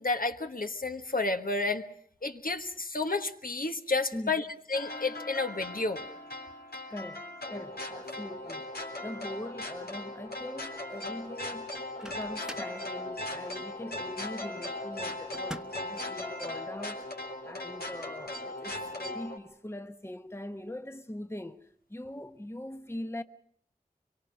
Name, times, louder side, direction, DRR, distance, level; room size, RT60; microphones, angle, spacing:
voice 1, 0.0-1.8 2.2-6.0, left 3 dB, 65° left, 1.4 m, -31 dB
sound 1, 4.7-19.4, left 2 dB, 85° left, 3.6 m, -39 dB
voice 2, 6.9-8.7 9.0-11.7 12.0-23.2, left 1 dB, 15° left, 1.0 m, -42 dB
Microwave oven, 11.8-12.8 15.3-15.9, equal, 5° right, 1.2 m, -44 dB
24.5 x 23.5 x 6.2 m
wide cardioid pair, 45°, 16 cm